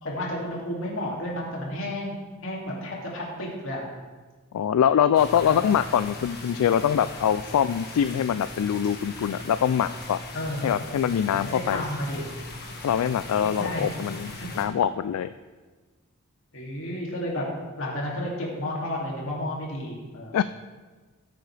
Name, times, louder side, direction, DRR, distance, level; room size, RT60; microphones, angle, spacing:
voice 1, 0.0-2.2 2.4-3.8 5.4-5.6 10.3-10.9 11.3-12.2 13.4-13.9 14.4-14.5 16.5-17.4 17.8-20.4, left 1 dB, 60° left, -3 dB, 2.5 m, -32 dB
voice 2, 4.5-10.2 10.6-11.8 12.8-15.3 20.3-20.4, left 9 dB, 80° left, 13 dB, 0.3 m, -24 dB
sound 1, 5.1-14.7, left 2 dB, 45° left, 1.6 m, -39 dB
15.0 x 8.4 x 3.3 m, 1.3 s
head